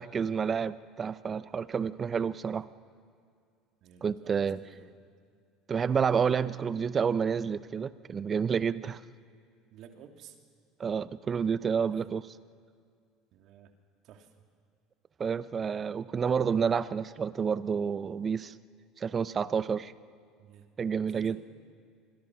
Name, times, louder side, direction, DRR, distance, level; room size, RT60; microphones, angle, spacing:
voice 1, 0.0-2.7 4.0-4.6 5.7-9.0 10.8-12.2 15.2-18.5 19.0-19.9 20.8-21.4, right 6 dB, 35° right, 16 dB, 0.8 m, -29 dB
voice 2, 3.8-4.9 9.7-10.4 11.9-12.1 13.3-13.7 14.0-14.3 20.4-20.7 21.1-21.4, right 9 dB, 55° right, 4 dB, 2.7 m, -53 dB
27.0 x 21.5 x 6.2 m, 2.3 s
hypercardioid pair, 70°, 0 cm